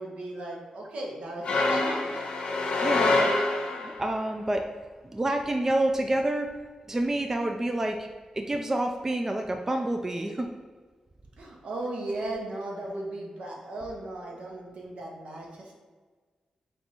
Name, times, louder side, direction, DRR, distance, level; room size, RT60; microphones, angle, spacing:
voice 1, 0.0-2.2 11.4-15.7, right 2 dB, 70° right, -1 dB, 0.9 m, -36 dB
sound 1, 1.4-4.1, left 2 dB, 65° left, 0.7 m, -26 dB
voice 2, 2.8-4.7 5.1-6.5 6.9-8.1 8.3-10.5, right 1 dB, 20° right, 4 dB, 0.3 m, -28 dB
3.4 x 2.8 x 4.0 m, 1.4 s
cardioid pair, 75°, 2 cm